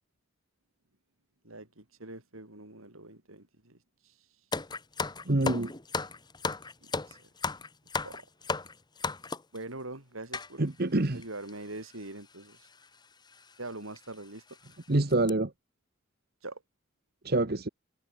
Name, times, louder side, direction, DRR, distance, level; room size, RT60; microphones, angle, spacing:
voice 1, 1.4-4.1 6.8-7.2 8.0-8.3 9.5-10.7 11.1-12.7 13.6-14.4 16.4-16.6, right 2 dB, 85° right, 6.0 m, -43 dB
sound 1, 4.5-9.6 10.3-10.5 11.2-11.3 11.5-11.7 12.7-12.9 13.3-13.4 14.0-14.1 14.5-14.7 15.1-15.3, left 4 dB, 20° left, 1.2 m, -34 dB
voice 2, 5.3-5.7 10.6-11.2 14.9-15.5 17.2-17.7, right 2 dB, 50° right, 1.2 m, -26 dB
head